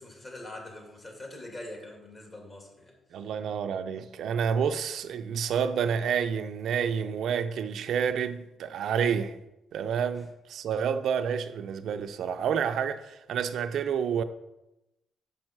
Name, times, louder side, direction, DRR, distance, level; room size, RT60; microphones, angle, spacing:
voice 1, 0.0-2.9 10.1-10.2, left 1 dB, 30° left, 2.6 m, -43 dB
voice 2, 3.1-9.4 9.7-14.2, right 7 dB, 70° right, 0.5 m, -29 dB
6.9 x 5.3 x 6.0 m
cardioid pair, 90°, 0 cm